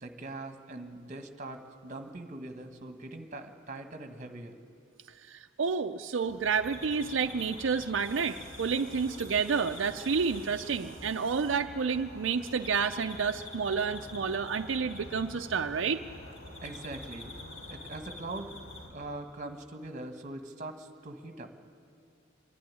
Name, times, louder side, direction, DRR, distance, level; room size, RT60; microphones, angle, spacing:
voice 1, 0.0-4.6 16.6-17.4 17.7-18.5 18.9-21.6, right 2 dB, 40° right, 6 dB, 1.4 m, -42 dB
voice 2, 5.3-16.0, right 5 dB, 80° right, 6 dB, 0.5 m, -30 dB
sound 1, 6.2-18.9, left 1 dB, 90° left, 3.7 m, -46 dB
24.5 x 11.5 x 9.7 m, 2.4 s
head